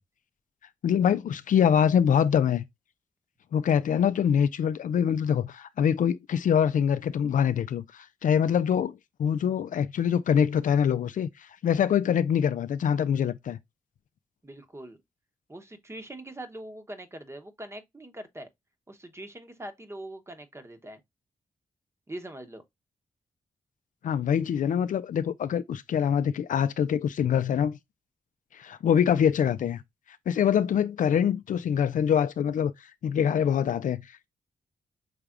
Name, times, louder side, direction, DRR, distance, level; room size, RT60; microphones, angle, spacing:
voice 1, 0.8-2.6 3.5-13.6 24.0-27.8 28.5-29.8 30.1-34.3, left 8 dB, 65° left, 0.4 m, -24 dB
voice 2, 14.4-15.0 15.5-18.5 18.9-21.0 22.1-22.6, right 1 dB, 20° right, 1.0 m, -42 dB
5.7 x 3.4 x 2.4 m
cardioid pair, 80°, 14 cm